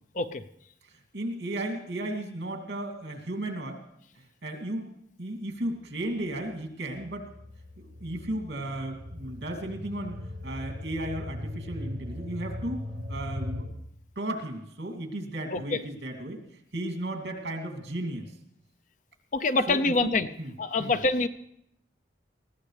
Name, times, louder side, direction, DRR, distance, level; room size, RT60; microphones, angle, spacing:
voice 1, 0.9-3.8 4.2-4.9 5.2-7.3 7.8-10.2 10.4-12.8 13.1-13.8 14.2-16.4 16.7-18.3 19.7-20.5 20.8-21.0, right 1 dB, 70° right, 2 dB, 2.6 m, -35 dB
sound 1, 6.0-13.6, left 1 dB, 50° right, 4.6 m, -39 dB
voice 2, 19.3-20.3 20.6-21.3, left 3 dB, 45° left, 11 dB, 0.5 m, -25 dB
20.5 x 15.5 x 3.3 m, 0.75 s
head